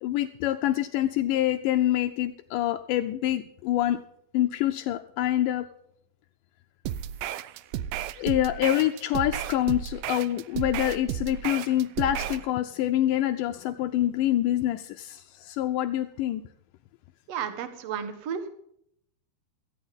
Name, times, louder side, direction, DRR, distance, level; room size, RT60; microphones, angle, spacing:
voice 1, 0.0-4.0 4.3-5.7 8.2-16.4, left 13 dB, 85° left, 6 dB, 1.9 m, -26 dB
sound 1, 6.9-12.5, right 11 dB, 80° right, 2.2 m, -33 dB
voice 2, 17.3-18.5, right 7 dB, 55° right, 9 dB, 2.0 m, -33 dB
17.5 x 13.5 x 3.8 m, 0.71 s
omnidirectional pair, 4.4 m